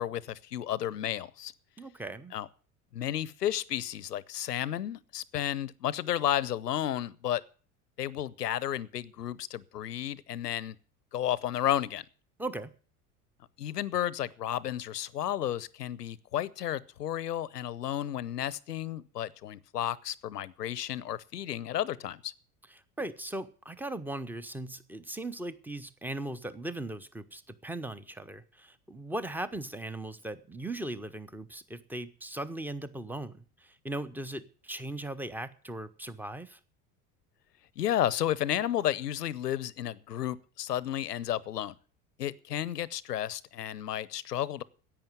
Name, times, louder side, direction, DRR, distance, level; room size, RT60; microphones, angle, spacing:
voice 1, 0.0-1.5 2.3-2.5 2.9-7.4 8.0-10.8 11.1-12.0 13.6-22.3 37.8-41.7 42.2-44.6, left 11 dB, 90° left, 0.7 m, -32 dB
voice 2, 1.8-2.3 12.4-12.7 23.0-36.6, right 1 dB, 5° right, 1.0 m, -38 dB
10.5 x 8.8 x 9.2 m
hypercardioid pair, 75°, 46 cm